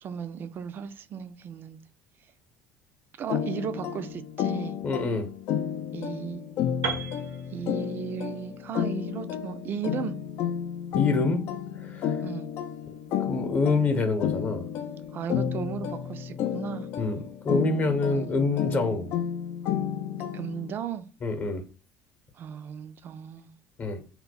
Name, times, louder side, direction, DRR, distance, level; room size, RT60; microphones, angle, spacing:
voice 1, 0.0-1.8 3.2-4.8 5.9-6.4 7.5-10.2 12.2-12.5 15.1-16.9 18.1-18.6 20.3-21.1 22.4-23.5, right 7 dB, 45° right, 0.4 m, -36 dB
sound 1, 3.3-20.7, left 9 dB, 65° left, 0.4 m, -32 dB
voice 2, 4.8-5.3 10.9-11.4 11.8-12.2 12.9-13.0 13.2-14.7 17.0-19.1 21.2-21.6 23.8-24.0, left 3 dB, 40° left, 0.8 m, -26 dB
Piano, 6.8-10.8, right 6 dB, 75° right, 0.7 m, -38 dB
2.3 x 2.1 x 3.9 m
supercardioid pair, 95°, 5 cm